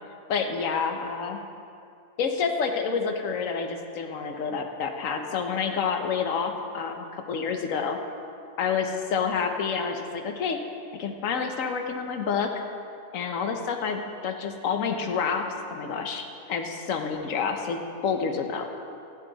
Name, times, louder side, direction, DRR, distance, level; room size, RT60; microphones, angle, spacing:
voice 1, 0.3-1.4 2.2-8.0 8.6-10.6 11.0-12.5 13.1-18.7, left 6 dB, 60° left, 5 dB, 1.3 m, -28 dB
14.5 x 11.5 x 4.0 m, 2.5 s
omnidirectional pair, 1.6 m